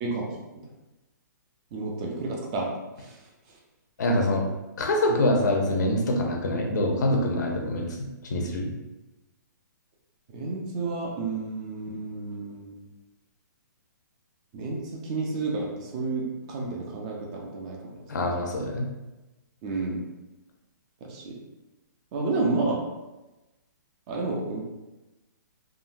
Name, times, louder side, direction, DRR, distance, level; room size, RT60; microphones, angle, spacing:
voice 1, 1.7-2.7 3.0-3.2 10.3-12.8 14.5-17.8 19.6-20.0 21.0-21.3 22.1-22.8 24.1-24.6, right 3 dB, 20° right, -1 dB, 0.4 m, -30 dB
voice 2, 4.0-4.4 4.8-8.7 18.1-18.9, left 1 dB, 65° left, 1 dB, 0.7 m, -25 dB
3.6 x 2.1 x 2.5 m, 1.0 s
hypercardioid pair, 165°, 10 cm